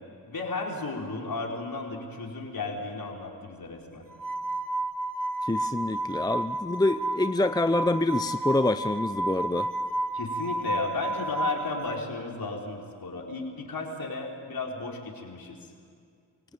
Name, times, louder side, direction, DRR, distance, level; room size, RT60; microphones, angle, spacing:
voice 1, 0.3-4.0 10.1-15.6, left 3 dB, 55° left, 0 dB, 4.7 m, -34 dB
sound 1, 4.1-12.0, right 2 dB, 50° right, 1.6 m, -31 dB
voice 2, 5.4-9.7, left 2 dB, 10° left, 11 dB, 0.6 m, -26 dB
25.5 x 17.0 x 8.9 m, 2.3 s
supercardioid pair, 45°, 43 cm